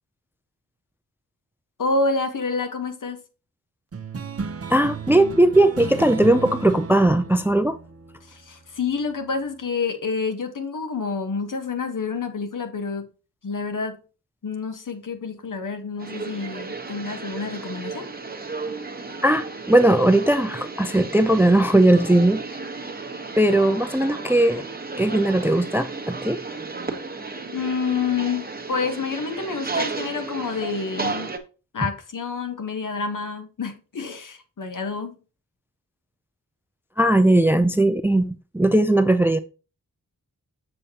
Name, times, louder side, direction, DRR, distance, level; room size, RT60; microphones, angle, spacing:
voice 1, 1.8-3.2 8.3-13.0 13.4-14.0 14.4-18.1 27.5-31.3 31.7-35.2, left 4 dB, 60° left, 1.3 m, -28 dB
sound 1, 3.9-8.8, right 5 dB, 40° right, 0.9 m, -34 dB
voice 2, 4.7-7.8 19.2-22.4 23.4-24.7 25.0-26.4 37.0-39.4, right 1 dB, 5° right, 0.5 m, -18 dB
sound 2, 16.0-31.4, right 3 dB, 25° right, 1.2 m, -33 dB
6.8 x 6.8 x 2.9 m
wide cardioid pair, 75°, 36 cm